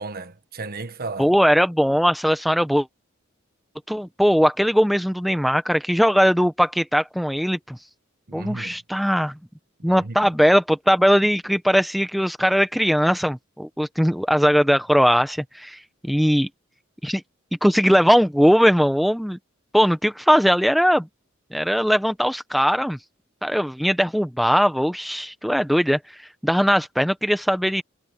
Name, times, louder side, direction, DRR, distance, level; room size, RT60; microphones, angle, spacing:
voice 1, 0.0-1.3 8.3-8.8 9.8-10.4, right 3 dB, 45° right, 1.3 m, -34 dB
voice 2, 1.2-2.9 3.9-7.8 8.3-9.3 9.8-16.5 17.0-17.2 17.6-19.4 19.7-21.1 21.5-23.0 23.4-26.0 26.4-27.8, equal, ahead, 0.8 m, -20 dB
head